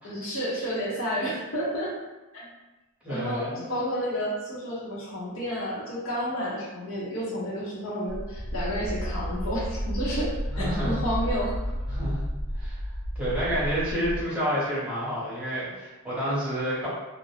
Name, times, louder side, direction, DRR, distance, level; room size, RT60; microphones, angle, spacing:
voice 1, 0.0-1.9 2.3-2.4 3.1-11.6, equal, 65° left, -6 dB, 0.8 m, -31 dB
voice 2, 3.0-3.6 10.5-11.0 11.9-12.2 12.5-12.8 13.1-16.9, equal, 5° right, -10 dB, 0.9 m, -29 dB
sound 1, 8.1-14.2, equal, 85° right, 0.7 m, -31 dB
2.4 x 2.1 x 3.2 m, 1.1 s
head